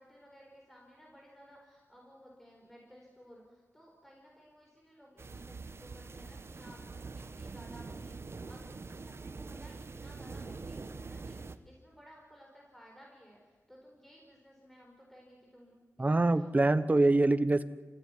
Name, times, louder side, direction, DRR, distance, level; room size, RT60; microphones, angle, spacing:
voice 1, 0.0-16.6, equal, 5° left, -1 dB, 4.5 m, -57 dB
sound 1, 5.2-11.6, right 4 dB, 50° right, 1.2 m, -44 dB
voice 2, 16.0-17.6, right 2 dB, 30° right, 13 dB, 1.1 m, -25 dB
28.0 x 15.5 x 9.9 m, 1.4 s
wide cardioid pair, 115°, 6 cm